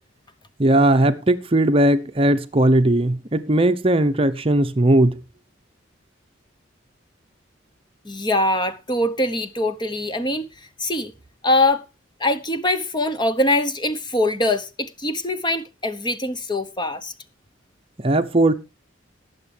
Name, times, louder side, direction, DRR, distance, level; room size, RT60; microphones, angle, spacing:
voice 1, 0.6-5.2 18.0-18.5, right 1 dB, 30° right, 0.7 m, -18 dB
voice 2, 8.0-10.5 10.8-11.1 11.4-11.8 12.2-17.1, left 1 dB, 25° left, 1.0 m, -23 dB
19.0 x 7.3 x 3.4 m
head